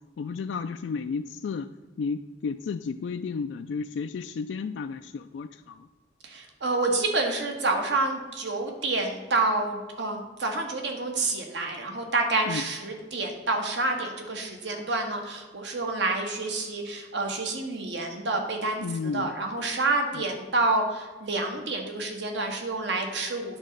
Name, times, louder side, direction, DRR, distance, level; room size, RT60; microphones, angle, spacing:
voice 1, 0.2-1.7 2.0-5.9 12.5-12.6 18.8-19.3 20.1-20.2, left 5 dB, 75° left, 8 dB, 0.3 m, -32 dB
voice 2, 6.2-18.8 19.1-23.6, right 3 dB, 70° right, 3 dB, 1.4 m, -28 dB
9.6 x 4.0 x 6.5 m, 1.2 s
head